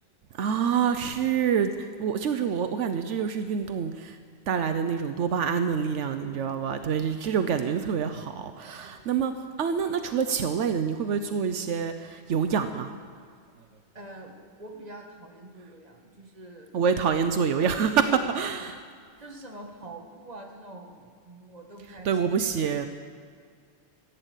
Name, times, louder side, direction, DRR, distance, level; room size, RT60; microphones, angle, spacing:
voice 1, 0.3-4.2 4.5-9.3 9.6-12.9 16.7-17.9 18.3-18.8 22.0-22.9, right 7 dB, 80° right, 8 dB, 1.0 m, -27 dB
voice 2, 6.2-6.5 8.8-9.1 13.9-16.7 17.6-18.2 19.2-22.2, right 1 dB, 35° right, 1 dB, 2.0 m, -45 dB
15.0 x 9.1 x 8.1 m, 2.1 s
omnidirectional pair, 1.2 m